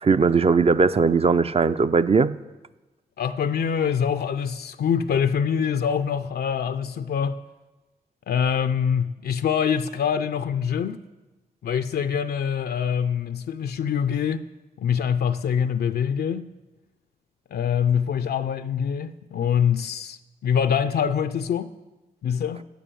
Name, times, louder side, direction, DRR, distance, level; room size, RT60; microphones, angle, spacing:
voice 1, 0.0-2.4, right 5 dB, 40° right, 0.4 m, -19 dB
voice 2, 3.2-7.4 8.3-11.0 11.6-14.5 14.8-16.5 17.5-21.7 22.2-22.6, left 7 dB, 75° left, 0.4 m, -24 dB
9.1 x 6.5 x 6.9 m
cardioid pair, 40°, 16 cm